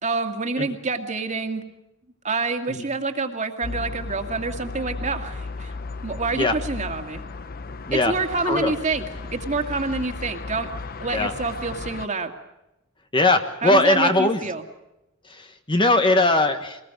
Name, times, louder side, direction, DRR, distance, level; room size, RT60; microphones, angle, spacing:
voice 1, 0.0-1.6 2.2-5.7 6.0-7.2 7.9-9.1 9.3-10.7 11.0-12.3 13.6-14.6, right 3 dB, 35° right, 5 dB, 2.2 m, -27 dB
sound 1, 3.6-12.1, left 3 dB, 45° left, 0.8 m, -35 dB
voice 2, 13.1-14.4 15.3-16.8, left 2 dB, 25° left, 7 dB, 1.4 m, -20 dB
23.0 x 20.5 x 7.9 m, 0.91 s
head